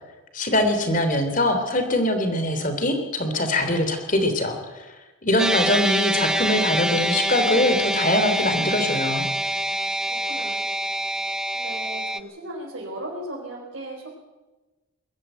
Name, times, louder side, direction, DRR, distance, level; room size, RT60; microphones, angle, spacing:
voice 1, 0.3-4.8 5.2-9.2, left 1 dB, 40° left, 7 dB, 3.1 m, -23 dB
sound 1, 5.4-12.2, right 1 dB, 5° right, 0.7 m, -25 dB
voice 2, 10.1-10.7 11.5-14.1, right 1 dB, 60° right, -4 dB, 4.7 m, -36 dB
22.0 x 13.5 x 9.1 m, 1.2 s
head